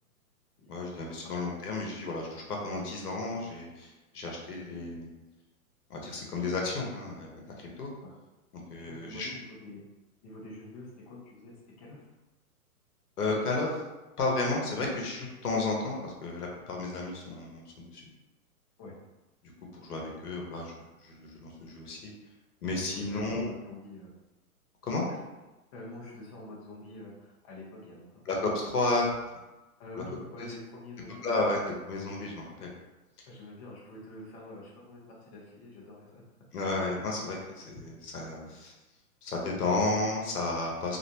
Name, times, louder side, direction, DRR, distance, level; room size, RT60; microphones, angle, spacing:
voice 1, 0.7-5.1 5.9-7.9 8.7-9.3 13.2-13.8 14.2-18.0 19.7-20.7 21.0-22.1 22.6-23.5 24.8-25.0 28.3-29.1 31.2-31.6 31.9-32.7 36.5-38.7 39.2-41.0, left 3 dB, 90° left, -1 dB, 0.9 m, -32 dB
voice 2, 8.8-9.8 10.2-12.1 18.8-19.0 22.7-24.2 25.1-25.2 25.7-28.2 29.8-31.6 33.3-36.2 36.5-36.7 38.5-38.6, left 1 dB, 25° left, -5 dB, 0.5 m, -46 dB
2.5 x 2.1 x 2.8 m, 1.1 s
hypercardioid pair, 130°, 45 cm